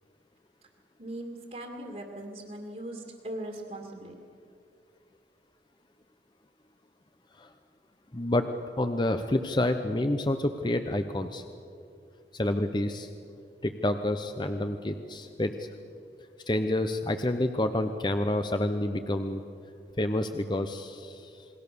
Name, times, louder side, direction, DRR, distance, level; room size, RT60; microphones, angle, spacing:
voice 1, 1.0-4.1, right 1 dB, 40° right, 2 dB, 2.3 m, -39 dB
voice 2, 8.1-8.5 8.8-11.4 12.3-13.1 13.6-15.7 16.5-19.4 20.0-21.5, left 1 dB, 25° left, 7 dB, 0.8 m, -28 dB
28.0 x 21.0 x 6.9 m, 2.5 s
head